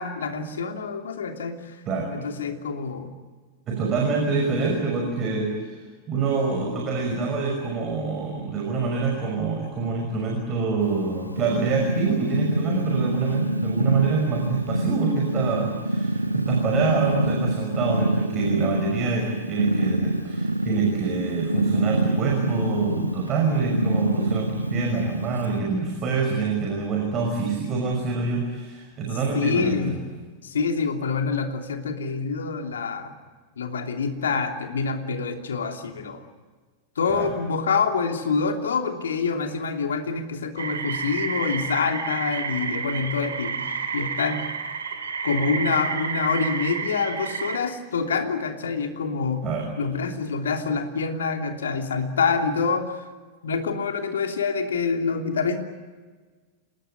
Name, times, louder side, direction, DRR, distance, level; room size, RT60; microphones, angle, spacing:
voice 1, 0.0-1.8 2.1-3.1 29.3-30.0 30.4-33.1 33.6-36.2 37.0-44.5 45.2-49.4 49.8-53.0 53.4-55.6, left 5 dB, 65° left, 5 dB, 2.9 m, -26 dB
voice 2, 3.7-5.8 6.1-30.0 37.1-37.3 49.4-49.7, right 4 dB, 30° right, 1 dB, 6.1 m, -26 dB
Purr, 10.8-25.6, right 1 dB, 85° right, 0.9 m, -26 dB
sound 1, 40.6-47.6, right 5 dB, 70° right, 2.8 m, -30 dB
28.0 x 19.5 x 9.6 m, 1.4 s
figure-of-eight pair, 90°, 0 cm